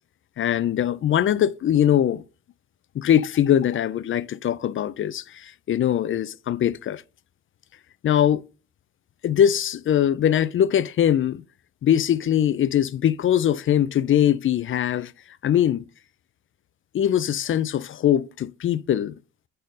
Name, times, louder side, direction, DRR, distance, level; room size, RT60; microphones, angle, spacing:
voice 1, 0.4-2.2 2.9-7.0 8.0-8.4 9.2-11.4 11.8-15.1 15.4-15.8 16.9-19.1, left 10 dB, 45° left, 0.4 m, -21 dB
6.4 x 4.4 x 5.3 m
cardioid pair, 90°, 30 cm